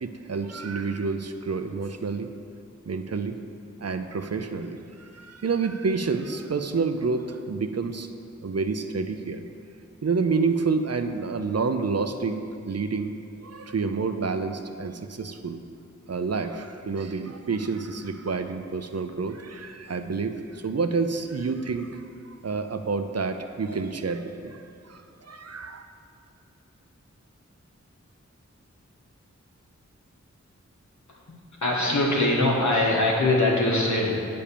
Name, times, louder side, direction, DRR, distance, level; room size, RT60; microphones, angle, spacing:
voice 1, 0.0-2.3 2.9-3.4 3.8-8.1 8.4-9.4 10.0-13.1 13.4-15.6 16.1-22.0 22.4-25.8, right 4 dB, 60° right, 8 dB, 0.6 m, -29 dB
voice 2, 31.6-34.3, left 2 dB, 80° left, -3 dB, 1.7 m, -22 dB
8.7 x 5.2 x 6.9 m, 2.6 s
wide cardioid pair, 50°, 29 cm